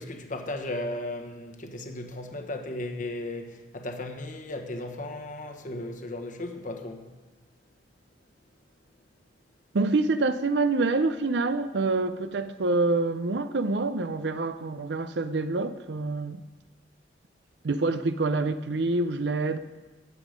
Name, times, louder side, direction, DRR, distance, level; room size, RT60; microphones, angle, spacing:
voice 1, 0.0-7.1, left 1 dB, 45° left, 1.2 m, -35 dB
voice 2, 9.7-16.4 17.6-19.6, right 3 dB, 75° right, 0.6 m, -26 dB
15.5 x 8.2 x 5.2 m
head